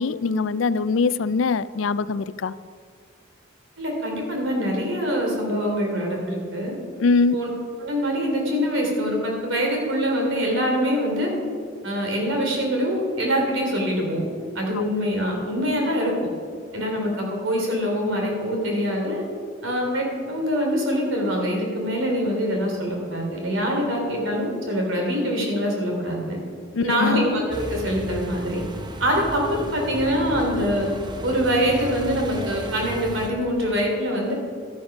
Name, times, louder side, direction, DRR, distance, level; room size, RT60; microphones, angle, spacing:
voice 1, 0.0-2.5 7.0-7.4 26.7-27.3, left 4 dB, 75° left, 16 dB, 0.4 m, -22 dB
voice 2, 3.8-6.7 7.3-7.5 7.8-11.3 11.8-14.2 14.5-16.1 16.7-19.2 19.6-26.4 26.8-28.6 29.0-30.9 31.2-34.3, equal, 80° right, 0 dB, 3.7 m, -24 dB
sound 1, 27.5-33.3, right 1 dB, 20° right, 0.8 m, -35 dB
13.0 x 10.0 x 6.2 m, 2.1 s
head